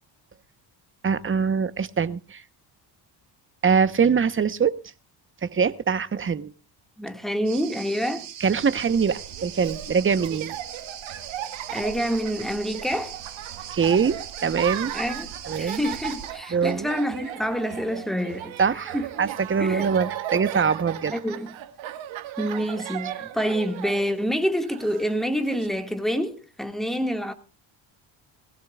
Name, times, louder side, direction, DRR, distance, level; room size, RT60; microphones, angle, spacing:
voice 1, 1.0-2.4 3.6-4.8 5.4-6.5 8.4-10.5 13.7-14.9 15.4-15.8 16.5-16.9 18.6-21.1, right 6 dB, 25° right, 1.0 m, -23 dB
voice 2, 7.0-8.3 11.7-13.2 14.9-15.3 15.6-18.6 18.9-19.0 19.6-19.8 21.1-21.5 22.4-27.3, equal, ahead, 1.8 m, -27 dB
sound 1, 7.4-16.3, right 9 dB, 65° right, 3.2 m, -40 dB
Laughter, 8.9-25.7, right 12 dB, 85° right, 1.8 m, -36 dB
21.5 x 16.5 x 2.4 m
cardioid pair, 120°, 46 cm